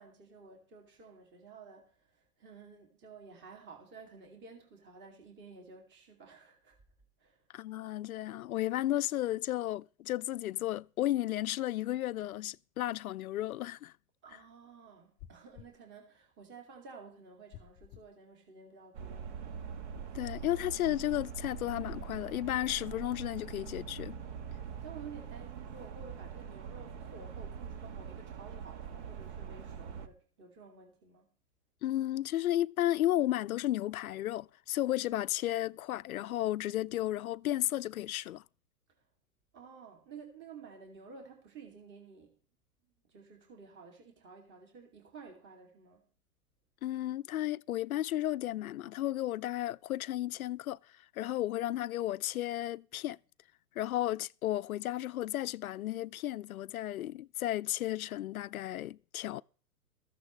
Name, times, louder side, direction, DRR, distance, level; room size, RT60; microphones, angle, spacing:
voice 1, 0.0-6.8 7.2-7.4 14.2-19.3 24.6-31.3 39.5-42.4 43.1-46.0, right 5 dB, 25° right, 2.5 m, -52 dB
voice 2, 7.5-13.9 20.1-24.2 31.8-38.4 46.8-50.8 51.2-53.2 53.8-59.4, left 14 dB, 70° left, 0.5 m, -33 dB
sound 1, 15.2-15.8 17.5-18.1 19.9-20.4, left 11 dB, 15° left, 0.5 m, -52 dB
sound 2, 18.9-30.1, right 7 dB, 50° right, 1.4 m, -43 dB
15.0 x 14.0 x 3.1 m
hypercardioid pair, 120°, 45 cm